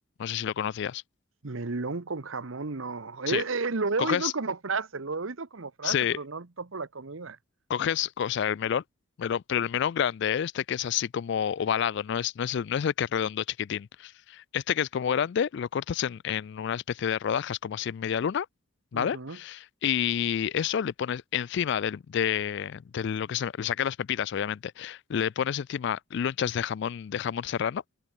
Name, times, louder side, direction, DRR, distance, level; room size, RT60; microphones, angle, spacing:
voice 1, 0.2-1.0 3.3-3.4 4.0-4.3 5.8-6.2 7.7-8.8 9.2-18.5 18.9-27.8, left 8 dB, 55° left, 0.3 m, -29 dB
voice 2, 1.4-7.4 18.9-19.4, right 3 dB, 70° right, 1.1 m, -32 dB
head